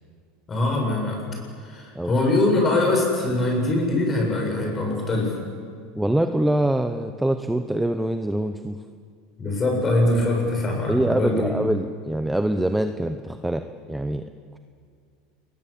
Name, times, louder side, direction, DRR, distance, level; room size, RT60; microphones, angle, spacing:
voice 1, 0.5-1.2 1.6-5.3 9.4-11.5, left 2 dB, 20° left, 1 dB, 7.9 m, -22 dB
voice 2, 6.0-8.7 10.9-14.2, right 1 dB, 5° right, 8 dB, 0.9 m, -24 dB
28.5 x 21.5 x 8.7 m, 2.2 s
supercardioid pair, 150°, 0 cm